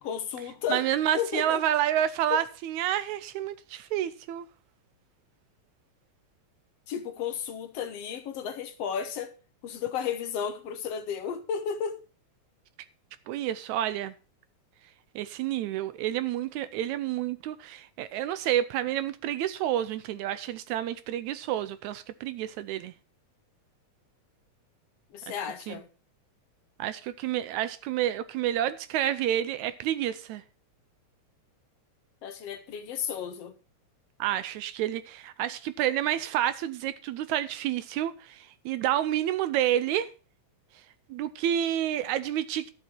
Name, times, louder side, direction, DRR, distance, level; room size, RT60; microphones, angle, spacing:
voice 1, 0.0-0.8 1.1-1.6 2.3-2.4 6.9-9.3 9.6-12.0 25.1-25.9 32.2-33.5, left 7 dB, 65° left, 1.9 m, -33 dB
voice 2, 0.7-4.5 13.3-14.1 15.2-22.9 25.7-25.8 26.8-30.4 34.2-40.1 41.1-42.7, right 11 dB, 80° right, 2.0 m, -29 dB
12.5 x 7.9 x 4.4 m
omnidirectional pair, 3.3 m